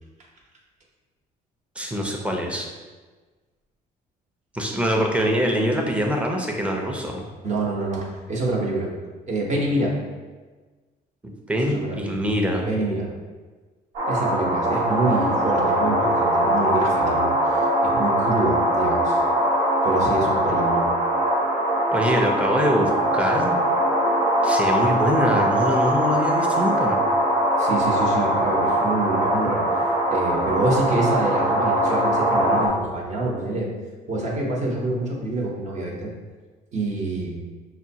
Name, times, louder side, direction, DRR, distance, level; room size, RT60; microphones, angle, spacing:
voice 1, 1.8-2.7 4.5-7.3 11.5-12.7 21.9-23.6 24.4-27.0, equal, 5° right, 0 dB, 0.6 m, -24 dB
voice 2, 7.4-8.9 9.3-10.0 11.7-12.2 12.6-13.1 14.1-19.2 19.8-20.9 27.6-29.7 30.1-33.7 34.1-36.1 36.7-37.4, right 2 dB, 45° right, -2 dB, 1.0 m, -26 dB
sound 1, 13.9-32.7, right 1 dB, 75° right, 1.1 m, -21 dB
5.9 x 2.2 x 2.8 m, 1.3 s
cardioid pair, 110°, 17 cm